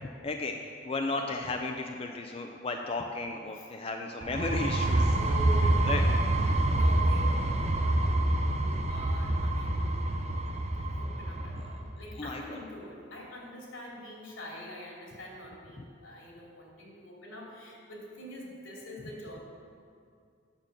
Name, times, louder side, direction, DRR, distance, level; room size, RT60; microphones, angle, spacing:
voice 1, 0.0-0.6 0.8-5.1 5.8-6.0 12.2-12.6 15.8-15.9, left 3 dB, 30° left, 3 dB, 0.5 m, -34 dB
voice 2, 1.2-1.5 3.5-3.7 5.1-6.2 6.8-8.3 8.5-10.4 11.0-19.4, equal, 80° left, -3 dB, 2.7 m, -45 dB
sound 1, 4.2-11.8, right 1 dB, 30° right, 0.7 m, -27 dB
9.0 x 6.6 x 7.2 m, 2.4 s
head